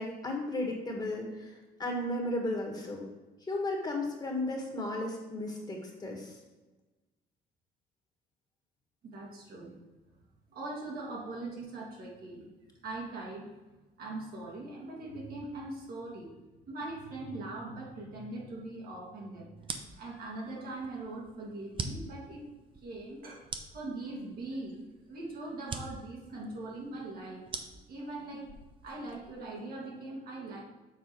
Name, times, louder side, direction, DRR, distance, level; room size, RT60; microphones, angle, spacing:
voice 1, 0.0-1.5 1.8-3.0 3.5-6.4, left 1 dB, 25° left, 0 dB, 1.5 m, -34 dB
voice 2, 9.0-9.7 10.5-12.5 12.8-13.5 14.0-16.4 16.7-19.7 19.9-28.5 28.8-30.6, right 2 dB, 65° right, -2 dB, 2.0 m, -41 dB
sound 1, 19.6-29.5, right 4 dB, 30° right, 0.6 m, -44 dB
7.0 x 3.9 x 4.7 m, 1.1 s
cardioid pair, 110°, 17 cm